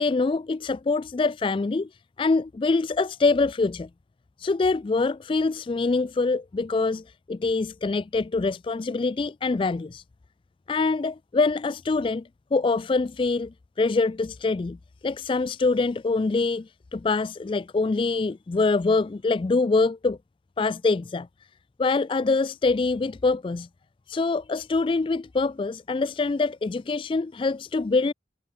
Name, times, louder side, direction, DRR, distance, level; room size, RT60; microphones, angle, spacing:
voice 1, 0.0-1.9 2.2-3.9 4.4-10.0 10.7-12.2 12.5-14.8 15.0-20.2 20.6-21.3 21.8-23.7 24.1-28.1, left 3 dB, 30° left, 0.3 m, -24 dB
head